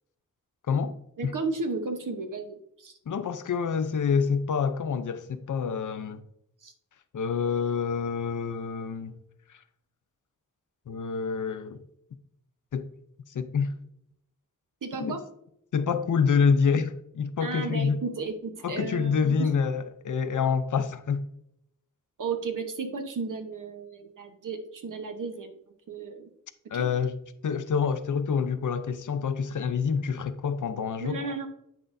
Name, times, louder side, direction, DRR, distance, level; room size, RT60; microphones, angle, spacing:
voice 1, 0.7-1.0 1.2-1.3 3.1-6.2 7.1-9.2 10.9-11.8 12.7-12.9 13.3-13.7 15.0-15.2 15.7-18.0 18.6-21.2 26.7-27.2 27.4-31.2, left 6 dB, 70° left, 0.6 m, -27 dB
voice 2, 1.2-3.0 6.6-6.7 14.8-15.2 17.4-19.5 22.2-25.6 25.9-26.3 26.7-26.9 31.0-31.5, right 4 dB, 70° right, 1.0 m, -34 dB
8.7 x 6.1 x 2.6 m
wide cardioid pair, 135°, 32 cm